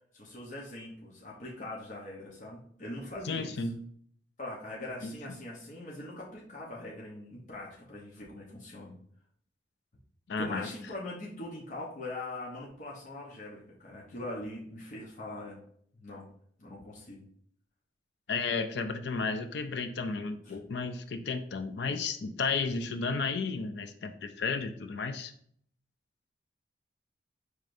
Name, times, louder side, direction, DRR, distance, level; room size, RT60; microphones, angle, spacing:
voice 1, 0.1-3.6 4.4-9.0 10.4-15.6 16.0-16.3 16.6-17.2 20.5-20.6, left 1 dB, 45° left, -4 dB, 0.8 m, -42 dB
voice 2, 3.2-3.7 5.0-5.4 10.3-10.7 18.3-25.3, left 4 dB, 70° left, 9 dB, 0.4 m, -33 dB
4.8 x 3.2 x 2.6 m, 0.62 s
head